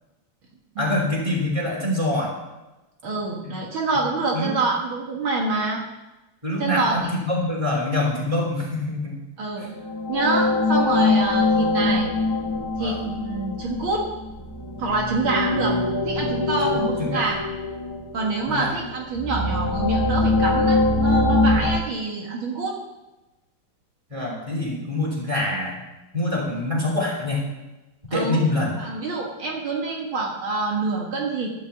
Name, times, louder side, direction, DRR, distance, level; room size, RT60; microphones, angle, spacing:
voice 1, 0.8-2.3 3.4-3.6 4.3-4.6 6.4-9.2 9.6-9.7 12.8-13.0 16.6-17.3 18.5-18.8 21.5-21.7 24.1-25.8 26.1-27.4 28.1-28.7, left 2 dB, 15° right, -2 dB, 3.6 m, -25 dB
voice 2, 3.0-5.8 6.6-6.9 9.4-9.7 10.1-12.1 12.8-14.1 14.8-15.8 16.1-17.4 18.1-22.8 28.1-28.4 28.8-31.5, right 3 dB, 70° right, -1 dB, 2.3 m, -26 dB
sound 1, 9.7-21.8, left 2 dB, 30° left, 0.5 m, -23 dB
12.0 x 6.3 x 8.2 m, 1.0 s
omnidirectional pair, 2.4 m